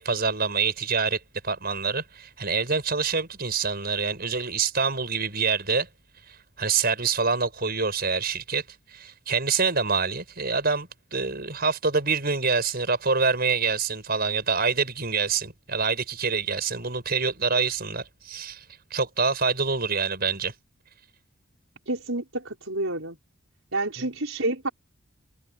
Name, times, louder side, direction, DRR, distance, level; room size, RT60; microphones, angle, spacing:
voice 1, 0.0-5.9 6.3-8.6 8.9-18.6 18.9-20.5 24.0-24.1, right 5 dB, 45° right, 6.1 m, -26 dB
voice 2, 21.9-23.2 23.7-24.7, right 2 dB, 70° right, 6.1 m, -29 dB
head